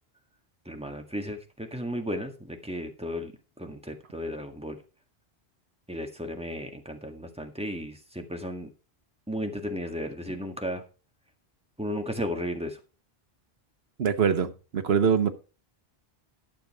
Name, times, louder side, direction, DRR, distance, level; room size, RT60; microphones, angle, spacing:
voice 1, 0.7-3.3 3.6-4.8 5.9-8.7 9.3-10.8 11.8-12.8, equal, 5° right, 1.8 m, -34 dB
voice 2, 14.0-15.3, right 7 dB, 80° right, 1.3 m, -24 dB
12.5 x 6.7 x 4.9 m
omnidirectional pair, 1.0 m